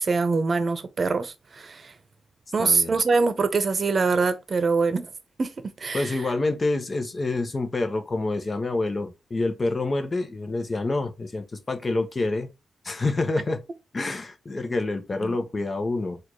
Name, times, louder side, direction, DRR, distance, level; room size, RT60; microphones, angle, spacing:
voice 1, 0.0-1.9 2.5-5.1 5.4-6.2 15.2-15.4, right 4 dB, 50° right, 0.7 m, -24 dB
voice 2, 2.6-3.0 5.9-12.5 12.8-13.6 13.9-16.2, left 2 dB, 40° left, 1.0 m, -27 dB
4.2 x 2.6 x 3.1 m
supercardioid pair, 45°, 0 cm